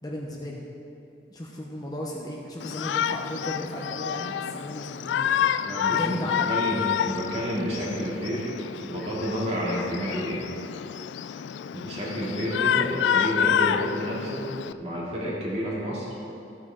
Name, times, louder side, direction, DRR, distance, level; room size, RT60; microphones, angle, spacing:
voice 1, 0.0-0.6 1.3-5.3 5.9-6.6, equal, 20° left, -2 dB, 0.9 m, -35 dB
Shout, 2.6-14.7, left 9 dB, 85° left, 0.3 m, -28 dB
voice 2, 5.6-8.5 8.8-10.4 11.7-14.4 14.8-16.1, equal, 35° right, -6 dB, 2.6 m, -30 dB
14.5 x 8.9 x 3.8 m, 2.7 s
head